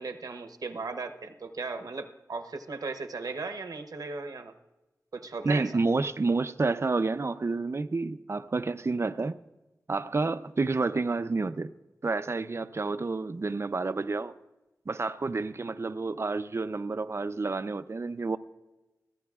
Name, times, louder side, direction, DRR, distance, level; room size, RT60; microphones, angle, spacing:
voice 1, 0.0-4.5 5.1-5.8, right 4 dB, 75° right, 0.8 m, -37 dB
voice 2, 5.4-9.4 9.9-11.7 12.0-14.4 14.9-18.4, right 3 dB, 45° right, 0.5 m, -29 dB
23.5 x 15.5 x 2.4 m
wide cardioid pair, 85°, 6 cm